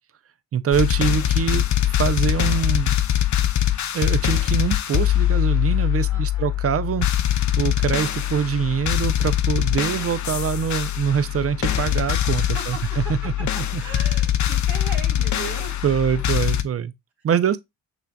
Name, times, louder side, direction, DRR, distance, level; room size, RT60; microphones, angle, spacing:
voice 1, 0.5-1.6 1.9-3.0 3.9-7.1 7.6-13.2 13.7-13.8 15.8-16.9 17.2-17.6, right 8 dB, 30° right, 0.5 m, -24 dB
sound 1, 0.7-16.6, left 12 dB, 40° left, 0.6 m, -22 dB
voice 2, 6.1-6.6 12.4-13.4 13.8-15.8, right 6 dB, 85° right, 1.6 m, -38 dB
6.1 x 3.3 x 2.2 m
hypercardioid pair, 50°, 47 cm